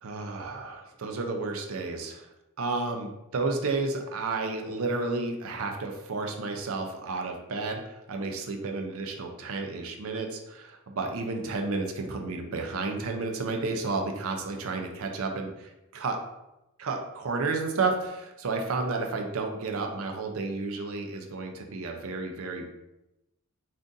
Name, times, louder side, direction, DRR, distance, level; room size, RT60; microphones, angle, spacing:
voice 1, 0.0-2.3 2.6-16.2 16.8-22.7, right 3 dB, 65° right, 3 dB, 0.5 m, -32 dB
2.6 x 2.5 x 3.7 m, 0.92 s
head